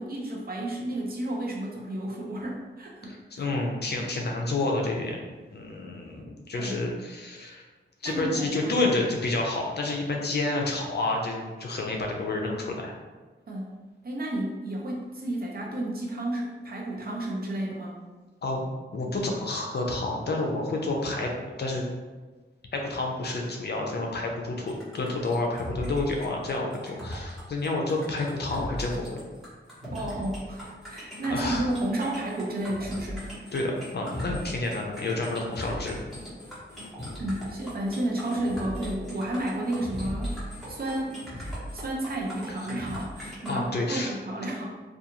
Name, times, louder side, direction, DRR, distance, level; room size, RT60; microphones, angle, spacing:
voice 1, 0.0-3.5 6.6-6.8 8.0-8.8 13.5-13.7 14.0-17.9 29.9-33.3 37.2-41.5 41.7-44.6, right 1 dB, 50° right, -2 dB, 0.6 m, -32 dB
voice 2, 3.0-5.2 5.5-7.6 8.0-12.9 18.4-21.3 21.6-21.9 22.7-29.2 31.3-31.7 33.5-36.0 42.5-42.6 43.5-44.1, left 2 dB, 55° left, 0 dB, 0.5 m, -29 dB
sound 1, 24.7-43.5, equal, ahead, 1.1 m, -38 dB
2.4 x 2.3 x 2.9 m, 1.3 s
wide cardioid pair, 90°, 20 cm